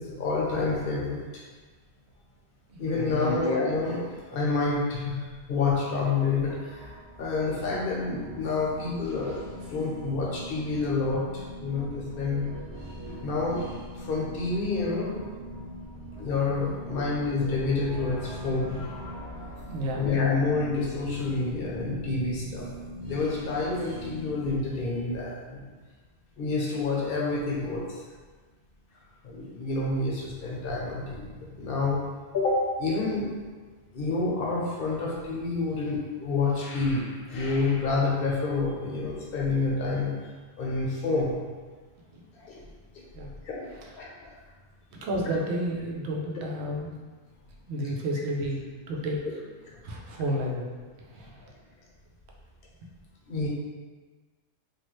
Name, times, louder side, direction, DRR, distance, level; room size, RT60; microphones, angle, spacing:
voice 1, 0.0-1.4 2.8-5.2 5.5-6.9 7.2-9.4 9.7-12.4 13.1-13.6 13.9-15.4 16.2-18.9 20.0-22.7 23.0-25.6 26.4-27.8 29.2-32.0 32.3-33.3 33.9-40.3 40.6-41.4 42.3-42.6 42.9-43.0 43.4-44.1 48.1-48.2 53.3-53.5, left 3 dB, 60° left, -3 dB, 0.9 m, -28 dB
voice 2, 2.7-3.3 19.7-20.1 42.1-42.2 43.1-43.4 45.0-46.9 47.7-49.2 49.8-50.7 51.1-51.4, equal, 70° right, -1 dB, 0.9 m, -31 dB
sound 1, 6.4-25.1, right 1 dB, 45° right, 0.5 m, -42 dB
3.0 x 2.4 x 3.1 m, 1.4 s
omnidirectional pair, 1.2 m